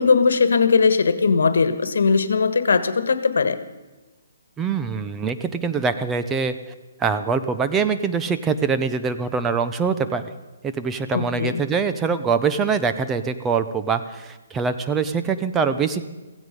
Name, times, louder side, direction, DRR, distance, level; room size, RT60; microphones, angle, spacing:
voice 1, 0.0-3.6 11.1-11.6, left 5 dB, 85° left, 12 dB, 1.5 m, -19 dB
voice 2, 4.6-6.5 7.0-10.2 10.6-16.0, right 5 dB, 10° right, 9 dB, 0.6 m, -23 dB
16.0 x 16.0 x 5.3 m, 1.1 s
hypercardioid pair, 170°, 0 cm